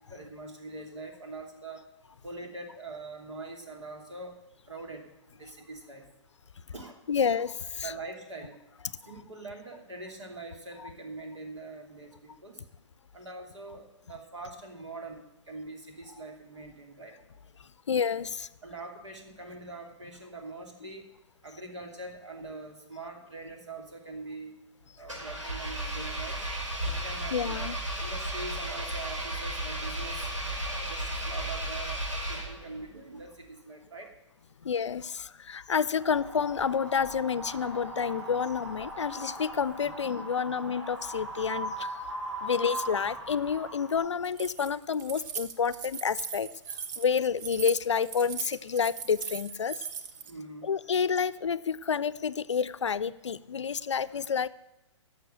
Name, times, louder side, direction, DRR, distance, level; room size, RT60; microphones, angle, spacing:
voice 1, 0.1-1.8 2.2-4.4 4.7-5.1 5.4-6.0 6.7-7.0 7.8-8.6 9.0-12.6 13.1-17.1 18.6-21.0 21.4-24.6 25.0-26.4 27.0-30.3 30.9-34.1 50.2-50.7, right 2 dB, 70° right, 3 dB, 2.9 m, -43 dB
voice 2, 7.1-7.9 9.0-9.1 10.8-10.9 17.6-18.5 27.3-27.8 34.6-42.0 42.4-49.9 50.6-54.5, left 6 dB, 70° left, 18 dB, 0.5 m, -29 dB
Engine, 25.0-32.8, right 1 dB, 85° right, 5.7 m, -34 dB
Wind, 35.9-44.0, right 1 dB, 5° right, 4.0 m, -39 dB
Keys jangling, 44.2-50.3, right 7 dB, 40° right, 0.9 m, -39 dB
11.5 x 6.7 x 8.8 m, 0.95 s
figure-of-eight pair, 120°, 16 cm